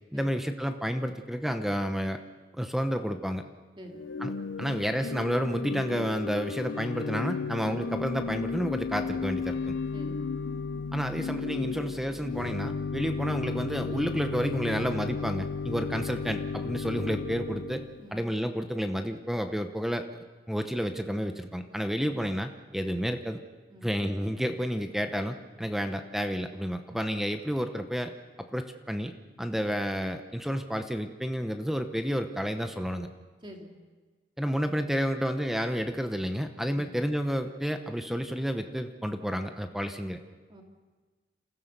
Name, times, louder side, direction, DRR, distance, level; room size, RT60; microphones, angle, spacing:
voice 1, 0.1-2.2 2.5-3.4 4.2-4.3 4.6-9.7 10.9-17.8 18.1-20.1 20.5-23.4 23.8-28.1 28.5-29.1 29.4-33.1 34.4-40.2, equal, ahead, 7 dB, 0.8 m, -30 dB
Organ / Church bell, 3.9-18.1, left 4 dB, 70° left, 0.8 m, -34 dB
voice 2, 9.9-10.2 18.0-18.2 23.7-23.9 33.4-33.7 36.7-36.9 40.5-40.6, equal, 25° right, 1 dB, 3.0 m, -47 dB
27.5 x 15.5 x 6.8 m, 1.3 s
head